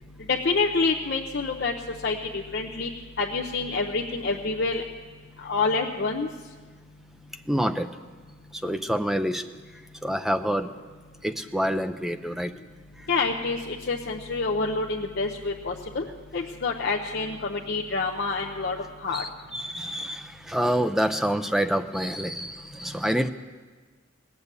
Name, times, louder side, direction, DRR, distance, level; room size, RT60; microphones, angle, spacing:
voice 1, 0.3-1.7 2.0-2.9 3.2-4.8 5.4-6.3 8.7-8.8 13.1-16.0 16.3-19.2, left 4 dB, 55° left, -1 dB, 0.7 m, -27 dB
voice 2, 7.5-7.9 8.6-9.4 10.0-10.7 11.2-12.5 19.1-23.3, equal, ahead, 8 dB, 0.4 m, -27 dB
19.0 x 6.9 x 8.2 m, 1.4 s
head